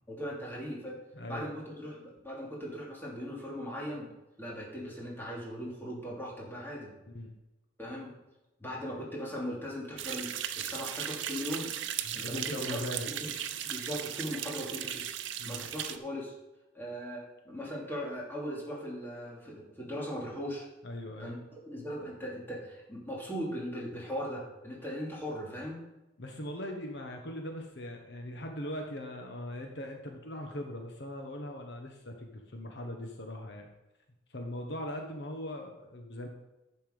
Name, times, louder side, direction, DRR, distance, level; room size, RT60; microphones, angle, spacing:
voice 1, 0.1-1.0 1.3-4.1 4.4-6.9 7.8-8.2 8.6-11.7 12.1-12.8 13.1-13.3 13.6-15.0 15.4-16.3 16.7-20.7 21.2-21.4 21.7-25.8, equal, 10° left, -5 dB, 2.9 m, -39 dB
voice 2, 1.1-1.5 7.1-7.3 12.0-13.3 15.4-15.7 20.8-21.4 26.2-33.7 34.3-36.3, left 1 dB, 65° left, 3 dB, 1.2 m, -40 dB
sound 1, 10.0-16.0, right 10 dB, 85° right, 0.7 m, -37 dB
11.0 x 6.9 x 5.3 m, 1.0 s
head